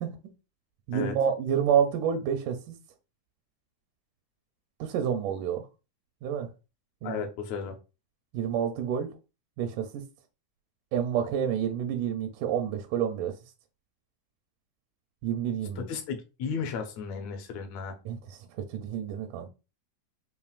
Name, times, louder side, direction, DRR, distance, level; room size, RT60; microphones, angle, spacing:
voice 1, 0.9-2.8 4.8-5.6 6.2-6.5 7.0-7.2 8.3-9.1 9.6-10.1 10.9-13.3 15.2-15.9 18.1-18.4 18.7-19.5, right 8 dB, 85° right, 2.1 m, -28 dB
voice 2, 7.0-7.8 15.8-18.0, left 6 dB, 70° left, 1.7 m, -34 dB
5.5 x 2.5 x 2.4 m
omnidirectional pair, 3.6 m